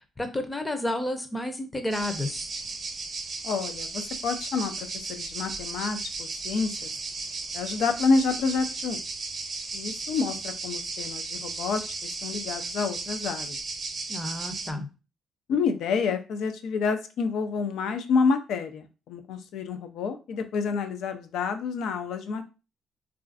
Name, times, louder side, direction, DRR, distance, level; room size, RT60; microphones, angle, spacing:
voice 1, 0.2-2.5 14.1-14.9, left 1 dB, 15° left, 7 dB, 0.6 m, -31 dB
sound 1, 1.9-14.7, right 3 dB, 45° right, 0.6 m, -35 dB
voice 2, 3.4-6.9 7.5-9.0 9.7-13.6 15.5-22.5, left 5 dB, 80° left, 8 dB, 0.4 m, -28 dB
3.1 x 2.4 x 2.4 m, 0.31 s
cardioid pair, 90°, 0 cm